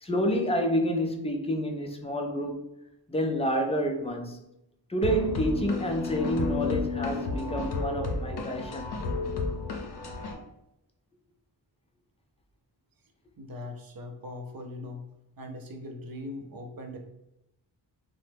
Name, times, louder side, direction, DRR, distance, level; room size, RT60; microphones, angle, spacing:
voice 1, 0.0-2.6 3.1-4.4 4.9-8.9, equal, 15° left, 0.3 m, -28 dB
sound 1, 5.0-10.3, left 3 dB, 60° left, 0.6 m, -32 dB
voice 2, 13.4-15.1 15.4-17.0, left 2 dB, 55° right, 0.6 m, -40 dB
3.2 x 2.0 x 3.3 m
wide cardioid pair, 110°, 44 cm